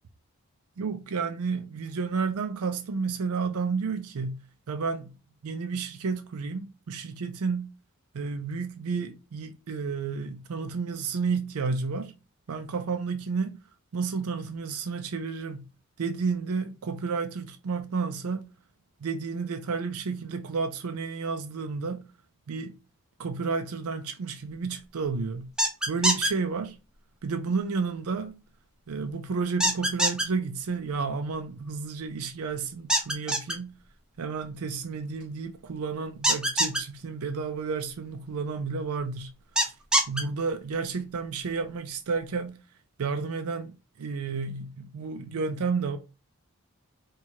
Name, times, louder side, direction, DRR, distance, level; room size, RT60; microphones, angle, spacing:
voice 1, 0.8-5.1 5.4-7.7 8.1-12.1 12.5-13.6 13.9-15.6 16.0-18.5 19.0-22.1 22.5-22.7 23.2-25.5 25.9-26.8 27.2-28.4 28.9-33.8 34.2-39.3 39.6-39.7 40.1-42.6 43.0-46.0, right 4 dB, 80° right, 0.5 m, -31 dB
sound 1, 25.6-26.3 29.6-30.2 32.9-33.5 36.2-36.8 39.6-40.2, right 1 dB, 5° right, 0.5 m, -23 dB
4.4 x 2.4 x 2.9 m
head